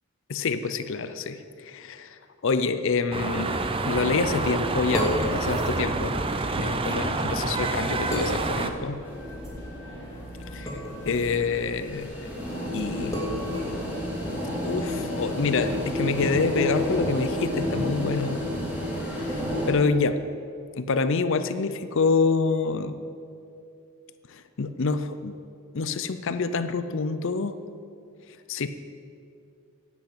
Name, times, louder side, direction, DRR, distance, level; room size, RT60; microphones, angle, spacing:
voice 1, 0.3-3.6 3.9-6.1 6.6-9.0 10.5-12.3 12.7-13.9 14.6-18.4 19.2-20.2 20.8-23.0 24.3-25.3 25.7-27.6 28.5-28.7, left 4 dB, 60° left, 11 dB, 0.5 m, -27 dB
sound 1, 3.1-8.7, right 3 dB, 25° right, 0.6 m, -28 dB
sound 2, 4.2-14.6, equal, 15° left, 2.5 m, -35 dB
sound 3, 9.1-19.7, left 1 dB, 10° right, 2.2 m, -31 dB
10.5 x 8.4 x 7.8 m, 2.5 s
head